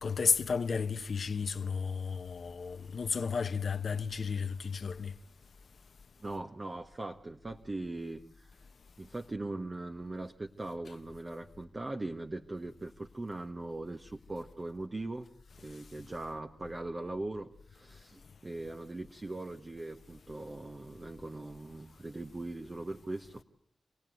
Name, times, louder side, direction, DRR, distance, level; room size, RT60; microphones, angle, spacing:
voice 1, 0.0-5.1, left 5 dB, 65° left, 1.1 m, -32 dB
voice 2, 6.2-8.5 9.0-15.3 15.6-23.4, right 2 dB, 35° right, 1.4 m, -40 dB
28.0 x 18.0 x 9.4 m
cardioid pair, 50°, 0 cm